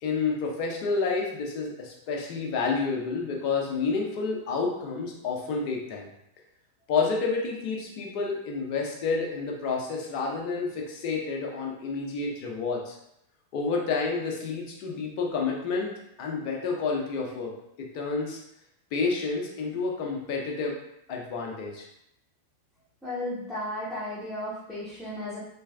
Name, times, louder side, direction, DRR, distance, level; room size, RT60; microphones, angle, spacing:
voice 1, 0.0-6.1 6.9-13.0 13.5-15.9 16.2-17.5 17.8-18.4 18.9-20.7 21.1-21.9, left 4 dB, 45° left, 0 dB, 0.7 m, -29 dB
voice 2, 23.0-25.4, left 1 dB, ahead, -12 dB, 1.1 m, -34 dB
3.3 x 3.2 x 2.3 m, 0.80 s
figure-of-eight pair, 90°, 0 cm